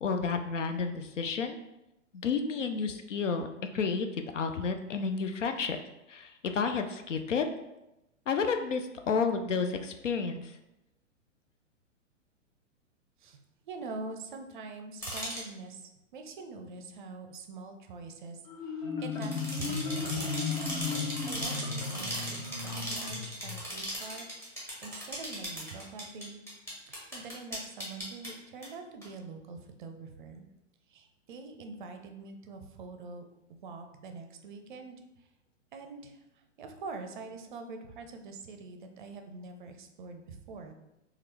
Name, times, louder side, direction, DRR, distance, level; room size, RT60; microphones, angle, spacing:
voice 1, 0.0-1.6 2.2-3.5 3.7-5.8 6.1-7.5 8.3-10.5, left 5 dB, 75° left, 6 dB, 0.5 m, -31 dB
voice 2, 13.7-20.6 21.2-24.3 24.8-26.4 26.9-30.5 30.9-33.2 33.5-35.3 35.7-40.7, right 3 dB, 40° right, 5 dB, 0.5 m, -45 dB
sound 1, 15.0-15.4 19.1-28.3 28.6-28.7 29.0-29.1, equal, 5° left, 1.0 m, -38 dB
Marimba xylophone, 18.5-23.6, left 4 dB, 35° left, 0.7 m, -35 dB
4.3 x 2.4 x 3.3 m, 0.93 s
figure-of-eight pair, 110°, 38 cm